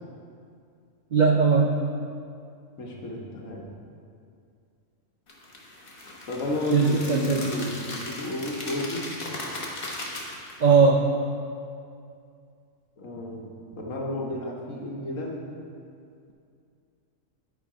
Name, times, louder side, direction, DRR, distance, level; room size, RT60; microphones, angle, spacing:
voice 1, 1.1-1.7 6.7-7.4 10.6-11.0, right 5 dB, 60° right, 0 dB, 0.4 m, -19 dB
voice 2, 2.8-3.7 6.3-9.0 13.0-15.4, left 1 dB, 75° left, -1 dB, 1.5 m, -32 dB
sound 1, 5.3-10.7, left 2 dB, 45° left, 1.3 m, -37 dB
10.5 x 4.7 x 4.9 m, 2.4 s
omnidirectional pair, 1.4 m